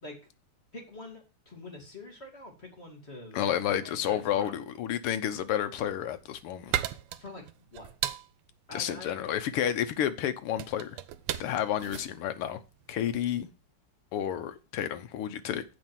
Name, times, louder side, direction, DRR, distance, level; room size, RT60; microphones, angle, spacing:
voice 1, 0.7-4.6 7.1-7.4 7.7-7.9 8.7-9.3, left 2 dB, 30° left, 2.6 m, -45 dB
voice 2, 3.3-6.7 8.7-11.0 11.4-12.6 12.9-13.5 14.1-15.6, left 10 dB, 85° left, 1.8 m, -30 dB
sound 1, 6.1-13.3, right 12 dB, 90° right, 1.6 m, -37 dB
7.8 x 5.3 x 7.3 m
omnidirectional pair, 2.4 m